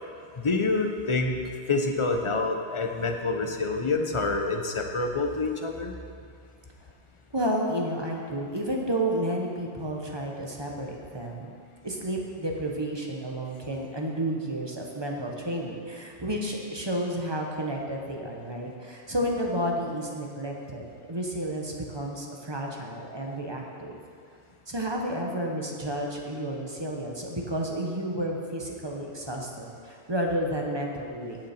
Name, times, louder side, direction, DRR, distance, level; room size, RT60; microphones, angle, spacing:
voice 1, 0.4-1.4 1.7-6.0, left 3 dB, 30° left, 3 dB, 0.8 m, -27 dB
voice 2, 7.3-11.5 11.8-24.0 24.7-31.4, right 1 dB, 20° right, 0 dB, 1.2 m, -31 dB
17.0 x 6.5 x 4.4 m, 2.3 s
omnidirectional pair, 1.3 m